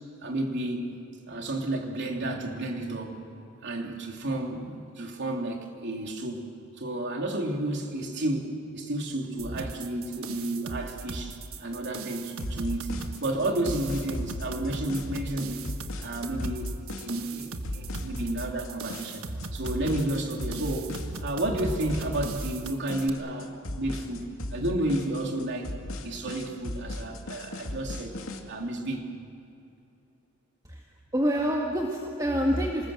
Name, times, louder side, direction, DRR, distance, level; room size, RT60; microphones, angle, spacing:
voice 1, 0.2-1.0 1.3-3.2 3.6-6.4 6.8-12.9 13.2-15.6 16.0-19.3 19.5-20.9 21.2-28.2 28.5-29.1, right 1 dB, 60° right, 2 dB, 3.1 m, -31 dB
sound 1, 9.4-23.1, right 3 dB, 90° right, 1.3 m, -38 dB
sound 2, 12.4-28.4, left 1 dB, 80° left, 2.3 m, -37 dB
voice 2, 31.1-32.9, equal, 20° right, -1 dB, 1.8 m, -26 dB
27.0 x 20.0 x 7.7 m, 2.7 s
head